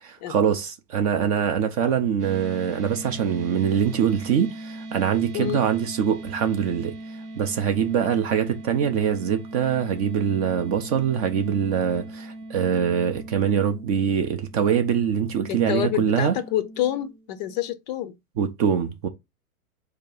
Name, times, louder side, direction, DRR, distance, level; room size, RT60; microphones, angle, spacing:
voice 1, 0.0-6.9 7.4-16.4 18.4-19.1, right 8 dB, 25° right, 0.4 m, -23 dB
sound 1, 2.2-17.7, right 1 dB, 85° right, 1.1 m, -40 dB
voice 2, 5.3-5.7 15.5-18.1, left 11 dB, 30° left, 0.5 m, -27 dB
4.5 x 2.8 x 3.8 m
hypercardioid pair, 110°, 44 cm